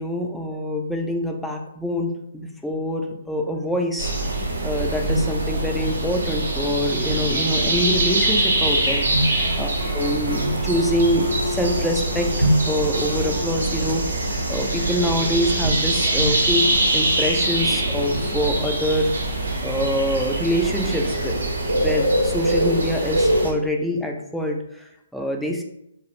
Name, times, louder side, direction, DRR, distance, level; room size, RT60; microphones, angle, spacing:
voice 1, 0.0-4.1 4.6-16.7 16.9-19.1 19.6-25.6, equal, ahead, 1 dB, 0.3 m, -25 dB
sound 1, 4.0-23.5, right 1 dB, 80° right, 0.7 m, -23 dB
2.3 x 2.0 x 2.9 m, 0.78 s
hypercardioid pair, 140°, 0 cm